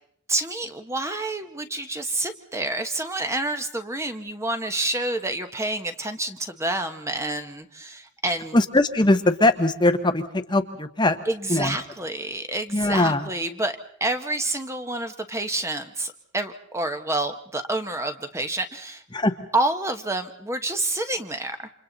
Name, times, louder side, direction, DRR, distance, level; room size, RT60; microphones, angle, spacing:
voice 1, 0.3-8.6 11.3-19.0 19.5-21.7, right 2 dB, 10° right, 8 dB, 1.0 m, -28 dB
voice 2, 8.5-11.2 11.5-11.8 12.7-13.2 19.1-19.3, left 2 dB, 20° left, 8 dB, 0.9 m, -21 dB
29.0 x 27.0 x 4.0 m, 0.63 s
head